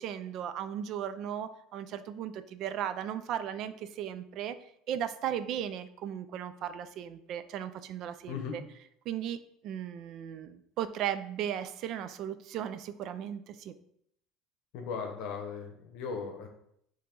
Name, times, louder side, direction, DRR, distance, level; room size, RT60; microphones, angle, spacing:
voice 1, 0.0-4.6 4.9-8.6 9.1-9.4 9.6-13.7, right 10 dB, 55° right, 12 dB, 0.4 m, -36 dB
voice 2, 14.7-16.5, left 5 dB, 70° left, 3 dB, 0.8 m, -37 dB
4.6 x 3.1 x 3.8 m, 0.72 s
cardioid pair, 125°, 0 cm